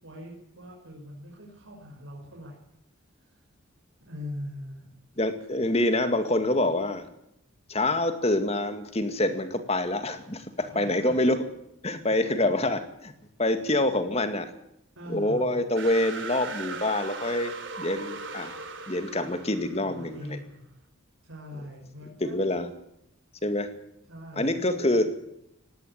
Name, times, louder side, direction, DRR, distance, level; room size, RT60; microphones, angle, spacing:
voice 1, 0.0-2.6 3.2-3.4 4.1-4.9 10.5-11.3 12.2-12.3 14.9-15.6 19.8-20.7 21.2-22.5 24.1-25.1, left 1 dB, 80° right, -2 dB, 5.8 m, -42 dB
voice 2, 5.2-7.1 7.7-11.4 11.8-13.1 13.4-14.5 15.1-18.5 18.9-20.4 22.2-22.7 23.4-23.7 24.4-25.1, left 1 dB, 30° left, 9 dB, 2.1 m, -26 dB
sound 1, 15.8-20.2, right 4 dB, 65° right, 3.5 m, -39 dB
18.5 x 16.0 x 8.7 m, 0.78 s
head